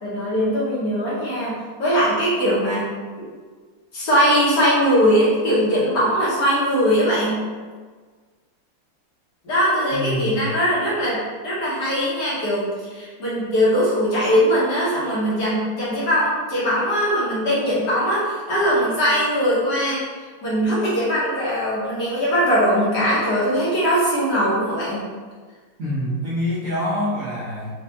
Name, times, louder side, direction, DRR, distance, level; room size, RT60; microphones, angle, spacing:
voice 1, 0.0-2.9 3.2-3.3 3.9-7.4 9.4-20.0 20.4-25.0, equal, 60° left, -8 dB, 1.4 m, -20 dB
voice 2, 9.9-10.5 25.8-27.7, left 1 dB, 65° right, -10 dB, 0.8 m, -25 dB
4.4 x 2.4 x 2.7 m, 1.5 s
omnidirectional pair, 2.4 m